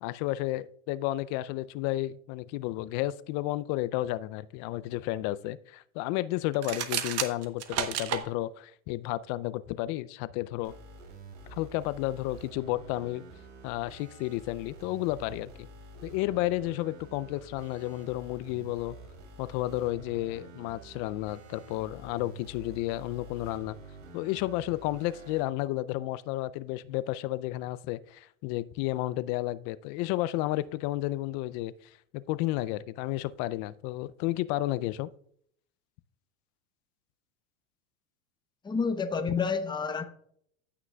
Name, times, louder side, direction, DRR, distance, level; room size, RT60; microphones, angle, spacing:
voice 1, 0.0-10.7 11.5-13.2 13.6-15.7 16.0-19.0 19.4-23.8 24.1-31.7 32.1-35.1 39.3-39.4, left 16 dB, 45° left, 0.4 m, -32 dB
sound 1, 6.5-8.2, right 9 dB, 35° right, 1.0 m, -31 dB
sound 2, 10.6-25.5, right 3 dB, 65° right, 2.9 m, -49 dB
voice 2, 38.6-40.0, left 5 dB, 10° left, 0.8 m, -29 dB
15.5 x 6.0 x 2.3 m
hypercardioid pair, 105°, 40 cm